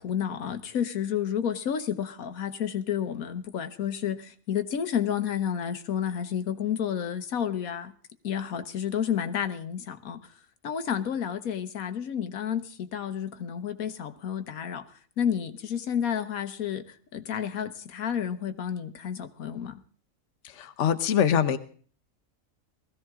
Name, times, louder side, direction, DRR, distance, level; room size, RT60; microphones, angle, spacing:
voice 1, 0.0-7.9 8.2-10.2 10.6-14.9 15.2-19.8, left 8 dB, 90° left, 1.5 m, -30 dB
voice 2, 20.4-21.6, left 8 dB, 60° left, 1.2 m, -24 dB
19.5 x 15.0 x 3.6 m
omnidirectional pair, 1.4 m